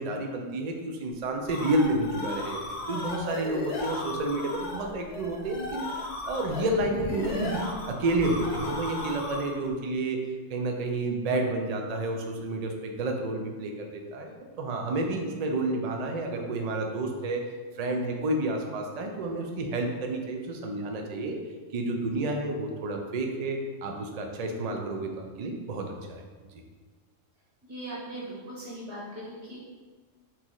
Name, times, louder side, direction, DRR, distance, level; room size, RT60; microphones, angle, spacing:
voice 1, 0.0-2.6 2.9-5.9 6.2-10.2 10.5-17.4 17.8-21.4 21.7-26.2, right 2 dB, 90° right, 2 dB, 0.3 m, -30 dB
sound 1, 1.2-9.7, left 2 dB, 65° left, 1.0 m, -36 dB
voice 2, 27.6-29.6, right 1 dB, 45° right, -7 dB, 1.7 m, -39 dB
4.1 x 3.0 x 3.7 m, 1.4 s
omnidirectional pair, 1.3 m